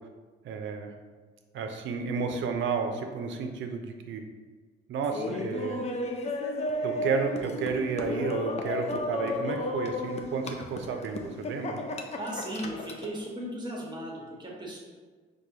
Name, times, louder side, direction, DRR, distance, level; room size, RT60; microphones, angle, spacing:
voice 1, 0.4-0.9 1.5-4.2 4.9-5.8 6.8-11.8, right 5 dB, 70° right, 5 dB, 0.5 m, -32 dB
Laughter, 5.0-13.1, left 2 dB, 35° left, 0.4 m, -33 dB
voice 2, 12.2-14.8, right 1 dB, 20° right, -3 dB, 1.0 m, -36 dB
4.6 x 2.2 x 2.7 m, 1.4 s
cardioid pair, 90°, 20 cm